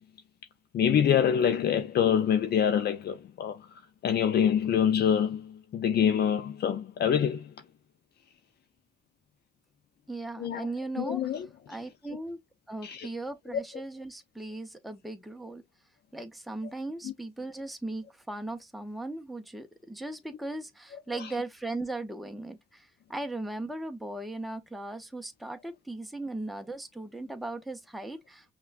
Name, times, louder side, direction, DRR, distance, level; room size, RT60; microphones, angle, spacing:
voice 1, 0.7-3.7 4.0-7.5 10.4-10.7 11.0-11.5 12.8-13.1 13.5-13.6 17.0-17.1 21.2-21.3, left 8 dB, 55° left, 0.5 m, -26 dB
voice 2, 10.1-11.3 11.7-12.4 12.7-15.6 16.1-28.5, right 2 dB, ahead, 0.7 m, -38 dB
5.5 x 2.3 x 2.4 m
cardioid pair, 90°, 20 cm